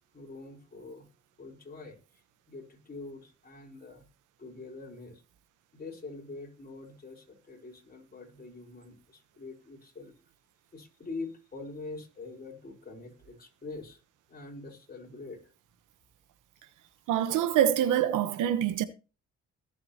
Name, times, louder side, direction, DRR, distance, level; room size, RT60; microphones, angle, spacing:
voice 1, 0.1-1.1 1.4-4.1 4.4-5.2 5.7-10.1 10.7-14.0 14.3-15.4, left 3 dB, 30° left, 4.4 m, -44 dB
voice 2, 17.1-18.8, right 10 dB, 90° right, 1.1 m, -25 dB
21.0 x 7.6 x 2.9 m
cardioid pair, 90°, 30 cm